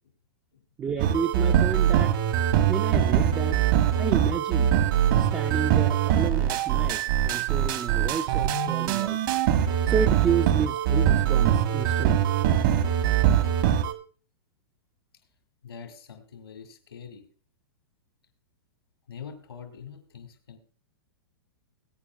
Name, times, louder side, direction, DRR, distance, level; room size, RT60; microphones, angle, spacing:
voice 1, 0.8-2.1 2.7-3.6 4.0-4.8 5.2-9.2 9.6-12.3, right 7 dB, 20° right, 4 dB, 0.6 m, -31 dB
sound 1, 1.0-13.9, right 10 dB, 60° right, 1.6 m, -23 dB
voice 2, 15.6-17.2 19.1-20.6, left 7 dB, 85° left, 5 dB, 2.5 m, -44 dB
21.0 x 9.1 x 2.4 m, 0.39 s
hypercardioid pair, 120°, 13 cm